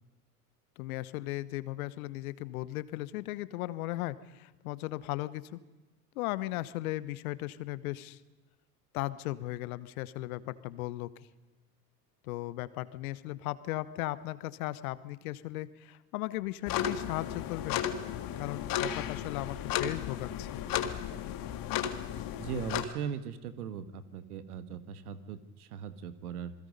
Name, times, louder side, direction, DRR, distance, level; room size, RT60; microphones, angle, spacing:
voice 1, 0.8-5.6 6.1-8.2 8.9-11.1 12.2-17.8 18.4-20.5, left 17 dB, 70° left, 17 dB, 1.1 m, -37 dB
sound 1, 16.7-22.9, left 10 dB, 50° left, 1.8 m, -34 dB
voice 2, 22.4-26.5, right 8 dB, 75° right, 13 dB, 1.6 m, -39 dB
27.0 x 21.0 x 5.3 m, 1.2 s
hypercardioid pair, 75°, 45 cm